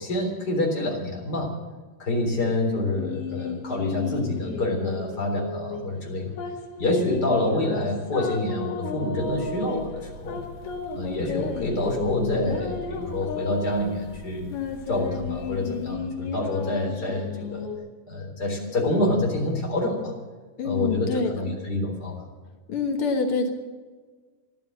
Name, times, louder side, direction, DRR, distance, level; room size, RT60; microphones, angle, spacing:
voice 1, 0.0-1.5 2.0-6.4 6.8-10.4 10.9-14.5 14.9-17.7 18.1-20.1 20.6-22.2, left 2 dB, 25° left, 0 dB, 3.8 m, -27 dB
sound 1, 3.0-17.8, left 4 dB, 70° left, 3.9 m, -34 dB
sound 2, 9.2-15.9, right 3 dB, 50° left, 1.8 m, -43 dB
voice 2, 20.6-21.4 22.7-23.5, left 4 dB, 85° left, 4 dB, 1.2 m, -26 dB
14.5 x 12.5 x 7.7 m, 1.4 s
omnidirectional pair, 4.8 m